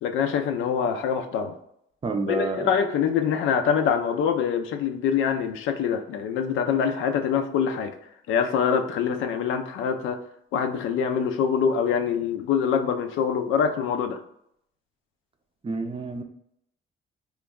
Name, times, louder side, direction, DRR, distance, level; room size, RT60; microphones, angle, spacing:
voice 1, 0.0-1.5 2.3-7.9 8.3-10.2 10.5-14.2, left 7 dB, 85° left, 6 dB, 0.5 m, -24 dB
voice 2, 2.0-2.7 15.6-16.2, right 3 dB, 30° right, 5 dB, 0.5 m, -29 dB
3.0 x 2.3 x 3.5 m, 0.74 s
cardioid pair, 90°, 20 cm